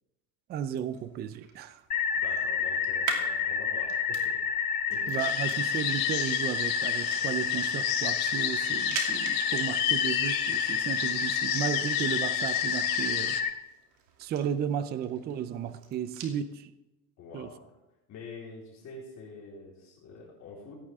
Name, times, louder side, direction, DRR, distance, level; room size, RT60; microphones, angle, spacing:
voice 1, 0.5-1.8 5.1-13.4 14.2-16.7 17.3-17.5, right 9 dB, 25° right, 13 dB, 0.4 m, -34 dB
sound 1, 0.6-16.4, right 6 dB, 80° right, 2.7 m, -45 dB
sound 2, 1.9-13.5, left 6 dB, 20° left, 0.9 m, -29 dB
voice 2, 2.1-4.4 4.9-5.2 17.2-17.5 18.1-20.7, left 3 dB, 40° left, -4 dB, 4.0 m, -46 dB
sound 3, 5.2-13.4, left 13 dB, 55° left, 1.2 m, -34 dB
16.5 x 9.9 x 3.5 m, 0.99 s
cardioid pair, 145°, 42 cm